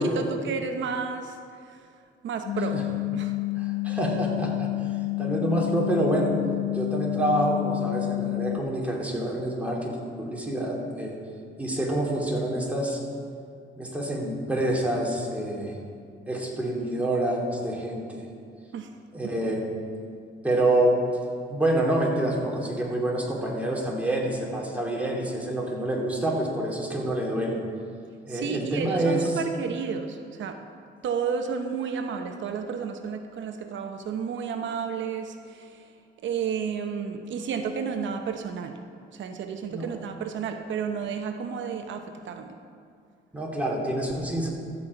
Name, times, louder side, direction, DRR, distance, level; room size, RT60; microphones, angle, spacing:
voice 1, 0.0-1.8 2.2-2.8 3.1-3.4 18.7-18.9 28.3-30.7 31.0-35.9 36.2-38.8 39.1-42.6, right 6 dB, 70° right, 6 dB, 0.8 m, -32 dB
sound 1, 2.5-8.6, left 21 dB, 70° left, 0.6 m, -29 dB
voice 2, 3.6-4.9 5.2-6.4 6.7-11.1 11.6-13.0 13.8-15.8 16.3-18.3 19.1-19.6 20.4-21.0 21.5-27.6 28.2-29.3 39.7-39.9 43.3-44.5, right 1 dB, 5° right, -3 dB, 2.9 m, -27 dB
13.5 x 5.5 x 8.2 m, 2.3 s
cardioid pair, 90°, 20 cm